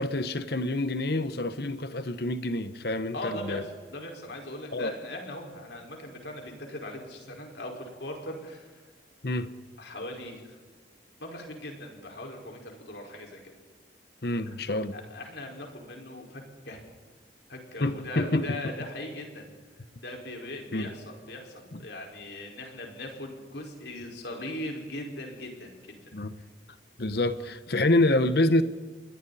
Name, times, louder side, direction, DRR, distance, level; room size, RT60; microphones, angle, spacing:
voice 1, 0.0-3.1 3.4-3.6 4.7-4.9 9.2-9.5 14.2-14.9 17.8-18.5 20.7-20.9 21.7-21.8 26.1-26.4 27.0-28.6, left 2 dB, 60° left, 11 dB, 1.1 m, -27 dB
voice 2, 3.1-8.8 9.8-10.6 11.2-13.5 14.5-14.6 14.9-16.8 17.5-19.6 20.0-26.5, left 1 dB, 75° left, 1 dB, 5.1 m, -40 dB
29.0 x 21.5 x 4.2 m, 1.4 s
head